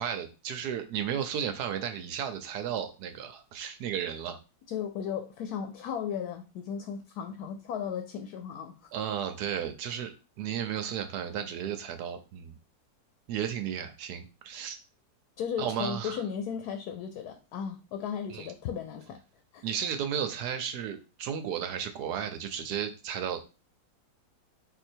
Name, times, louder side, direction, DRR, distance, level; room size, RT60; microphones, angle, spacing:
voice 1, 0.0-4.4 8.9-12.5 13.3-14.8 15.6-16.2 18.3-18.5 19.6-23.4, right 9 dB, 75° right, 8 dB, 1.1 m, -34 dB
voice 2, 4.7-8.9 15.4-19.2 19.5-19.6, left 8 dB, 75° left, 6 dB, 1.1 m, -35 dB
4.1 x 2.7 x 4.4 m, 0.32 s
omnidirectional pair, 1.8 m